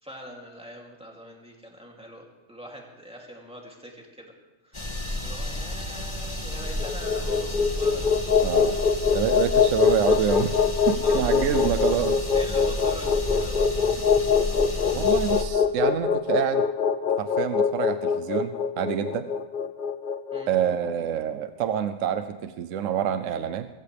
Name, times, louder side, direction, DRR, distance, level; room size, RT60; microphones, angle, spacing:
voice 1, 0.0-4.3 4.6-8.1 8.6-8.8 11.0-11.9 12.3-13.7 20.3-20.5, equal, 5° right, -1 dB, 2.8 m, -43 dB
sound 1, 4.7-15.4, left 1 dB, 20° left, 1.7 m, -32 dB
sound 2, 6.7-20.9, left 6 dB, 50° left, 0.7 m, -23 dB
voice 2, 8.4-8.8 9.1-10.5 10.9-12.2 14.9-16.6 17.2-19.3 20.5-23.7, right 9 dB, 75° right, 9 dB, 1.0 m, -27 dB
23.0 x 15.5 x 3.4 m, 1.2 s
omnidirectional pair, 1.3 m